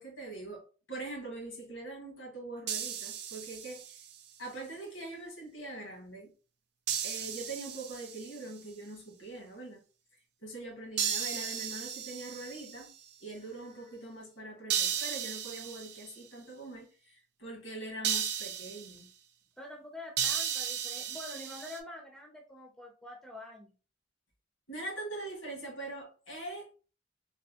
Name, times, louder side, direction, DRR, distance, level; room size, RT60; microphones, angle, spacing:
voice 1, 0.0-4.0 4.4-6.3 7.0-9.8 10.4-12.9 13.2-19.1 24.7-26.7, right 2 dB, 80° left, 1.6 m, -43 dB
sound 1, 2.7-4.1 6.9-8.4 11.0-12.9 14.7-16.1 18.0-19.0 20.2-21.8, right 8 dB, 55° right, 0.5 m, -35 dB
voice 2, 19.6-23.7, left 1 dB, 5° left, 0.4 m, -46 dB
3.4 x 2.6 x 2.8 m
head